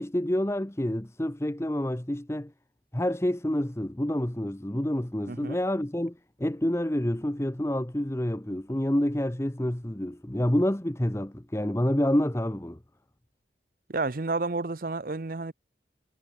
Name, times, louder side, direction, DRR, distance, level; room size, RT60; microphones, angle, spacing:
voice 1, 0.0-2.5 2.9-12.8, left 1 dB, 15° left, 0.9 m, -28 dB
voice 2, 5.3-5.6 13.9-15.5, right 3 dB, 50° right, 0.8 m, -30 dB
head